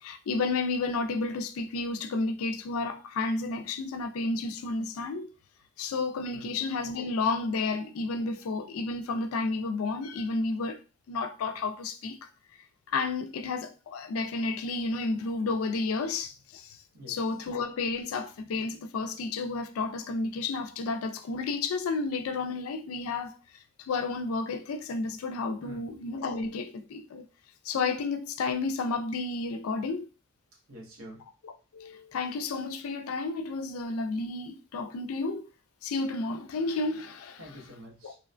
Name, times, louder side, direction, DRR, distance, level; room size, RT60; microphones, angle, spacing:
voice 1, 0.0-5.3 5.8-12.3 12.9-16.8 17.1-27.2 27.6-30.1 31.4-35.5 35.8-37.4 38.0-38.1, left 3 dB, 85° left, 0.4 m, -31 dB
voice 2, 25.6-25.9 30.7-31.3 37.4-38.2, equal, 75° right, 0.9 m, -46 dB
2.7 x 2.1 x 2.4 m
head